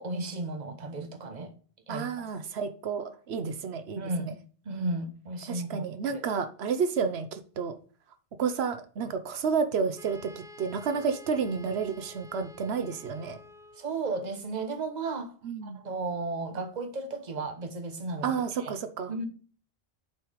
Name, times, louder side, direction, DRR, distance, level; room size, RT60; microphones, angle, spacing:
voice 1, 0.0-1.5 1.9-2.3 4.0-4.4 4.6-6.2 13.8-15.3 15.6-18.3 18.6-18.8 19.1-19.2, right 3 dB, 45° right, 1.2 m, -34 dB
voice 2, 1.9-4.3 5.5-7.8 8.4-13.4 15.4-15.8 18.2-19.1, right 6 dB, 90° right, 1.0 m, -31 dB
Wind instrument woodwind instrument, 10.0-14.0, left 2 dB, 5° right, 0.6 m, -50 dB
7.4 x 4.7 x 5.0 m
omnidirectional pair, 1.0 m